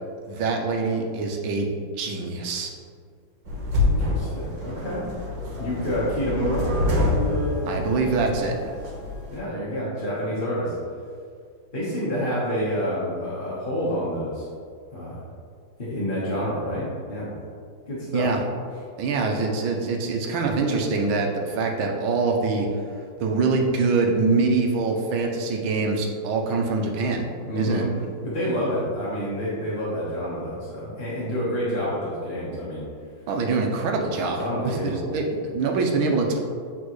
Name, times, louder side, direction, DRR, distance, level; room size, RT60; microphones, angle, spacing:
voice 1, 0.3-1.7 2.0-2.7 7.6-8.5 18.1-18.4 19.0-22.7 23.2-27.2 27.6-27.9 33.3-36.4, right 3 dB, 90° right, 2 dB, 1.6 m, -24 dB
sound 1, 3.4-9.4, left 2 dB, 65° right, 1.9 m, -26 dB
voice 2, 3.8-5.1 5.6-6.7 9.3-10.8 11.7-14.5 14.9-15.2 15.8-17.3 17.9-18.3 27.5-27.9 28.2-32.8 34.4-35.1, equal, 30° left, -8 dB, 1.2 m, -28 dB
8.3 x 4.1 x 3.1 m, 2.2 s
omnidirectional pair, 2.2 m